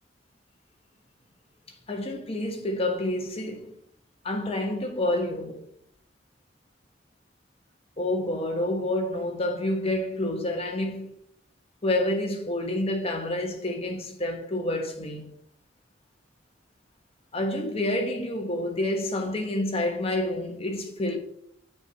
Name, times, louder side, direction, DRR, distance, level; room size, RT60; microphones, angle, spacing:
voice 1, 1.9-3.7 4.2-5.6 8.0-11.2 11.8-15.3 17.3-21.2, left 1 dB, 35° left, 1.3 m, -28 dB
6.9 x 4.3 x 5.8 m
head